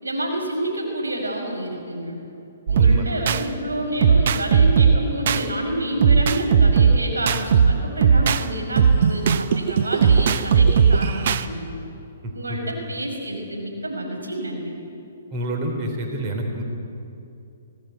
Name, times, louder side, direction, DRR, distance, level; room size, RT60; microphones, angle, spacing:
voice 1, 0.0-2.2 2.7-11.7 12.3-14.7, right 1 dB, 90° right, 1 dB, 6.0 m, -28 dB
voice 2, 2.7-3.1 12.5-12.6 15.3-16.6, right 1 dB, 35° right, 2 dB, 3.4 m, -27 dB
sound 1, 2.7-3.4 4.0-5.4 6.0-8.4 8.8-11.4, right 6 dB, 55° right, 0.9 m, -17 dB
25.0 x 17.5 x 8.1 m, 2.7 s
hypercardioid pair, 130°, 0 cm